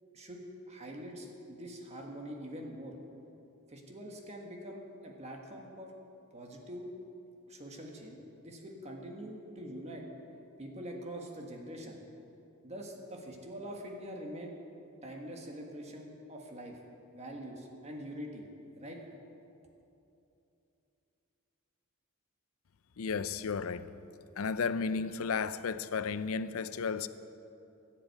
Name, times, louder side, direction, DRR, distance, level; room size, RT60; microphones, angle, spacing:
voice 1, 0.1-2.9 3.7-5.9 6.3-6.9 7.5-10.0 10.6-12.0 12.6-14.6 15.0-16.8 17.1-18.5 18.8-19.0, equal, 30° right, 1.6 m, -44 dB
voice 2, 23.0-23.9 24.4-27.1, left 5 dB, 75° left, 0.5 m, -33 dB
15.0 x 7.6 x 8.2 m
head